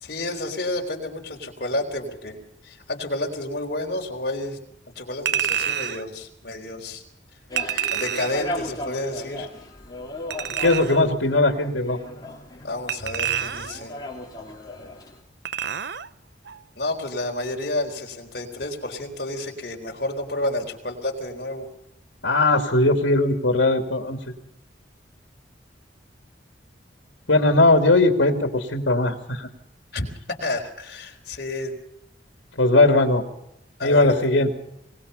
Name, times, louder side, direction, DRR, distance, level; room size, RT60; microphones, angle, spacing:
voice 1, 0.0-2.4 2.6-4.6 5.0-7.0 7.9-9.5 10.9-11.1 12.6-14.0 16.8-21.7 29.9-31.8 33.8-34.3, left 1 dB, 55° left, 2 dB, 4.1 m, -30 dB
Chink clink, 5.3-6.0 7.6-8.5 10.3-11.1 12.9-13.9 15.4-16.1 16.5-16.6, right 9 dB, 65° right, 0.7 m, -28 dB
sound 1, 7.5-15.2, left 1 dB, 20° left, 3.7 m, -36 dB
voice 2, 10.6-12.0 22.2-24.2 27.3-29.5 32.6-33.2 33.8-34.5, left 2 dB, 80° left, 4 dB, 2.6 m, -19 dB
23.0 x 20.5 x 5.6 m, 0.79 s
head